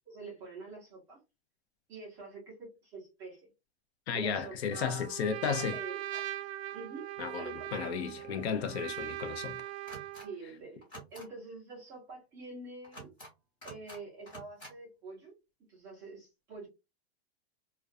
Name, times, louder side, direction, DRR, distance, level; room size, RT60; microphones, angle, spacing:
voice 1, 0.1-1.2 1.9-3.5 4.1-5.1 5.7-6.3 6.7-7.1 7.4-7.7 10.2-10.8 11.1-13.1 13.6-15.3 15.7-16.7, right 3 dB, 10° right, 0.5 m, -46 dB
voice 2, 4.1-5.8 7.2-9.6, left 6 dB, 75° left, 0.6 m, -34 dB
Trumpet, 4.7-10.4, right 14 dB, 75° right, 0.5 m, -41 dB
sound 1, 9.9-10.3 10.8-11.3 12.8-13.3 13.6-14.0 14.3-14.7, right 1 dB, 15° left, 1.0 m, -48 dB
2.4 x 2.2 x 2.4 m
supercardioid pair, 175°, 33 cm